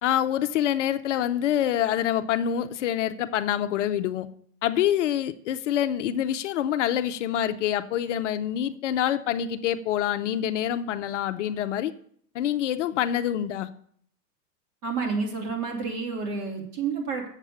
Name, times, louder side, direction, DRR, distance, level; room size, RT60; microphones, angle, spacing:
voice 1, 0.0-4.3 4.6-11.9 12.3-13.7, left 10 dB, 50° left, 11 dB, 0.6 m, -26 dB
voice 2, 14.8-17.3, right 5 dB, 65° right, 0 dB, 3.5 m, -29 dB
7.3 x 7.1 x 6.9 m, 0.63 s
hypercardioid pair, 140°, 48 cm